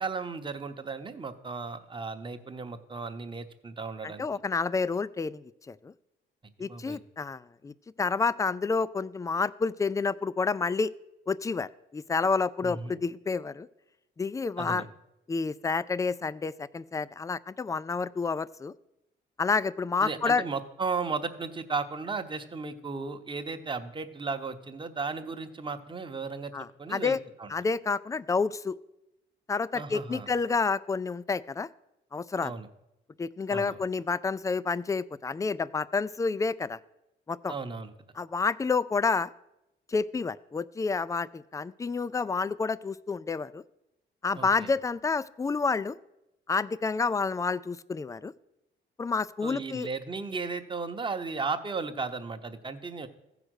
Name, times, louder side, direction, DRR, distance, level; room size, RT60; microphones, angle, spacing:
voice 1, 0.0-4.2 6.7-7.0 12.6-12.9 14.6-14.9 20.0-27.5 29.7-30.3 32.4-32.7 33.5-33.8 37.5-37.9 44.4-44.7 49.4-53.1, right 4 dB, 25° right, 7 dB, 0.9 m, -35 dB
voice 2, 4.0-5.9 6.6-10.9 11.3-13.7 14.2-14.8 15.3-18.7 19.4-20.4 26.5-27.2 27.5-28.8 29.5-31.7 32.1-32.5 33.2-36.8 37.3-37.5 38.2-39.3 39.9-43.6 44.2-46.0 46.5-48.3 49.0-49.9, left 4 dB, 15° left, 18 dB, 0.4 m, -29 dB
15.0 x 5.0 x 6.3 m, 0.91 s
cardioid pair, 90°, 20 cm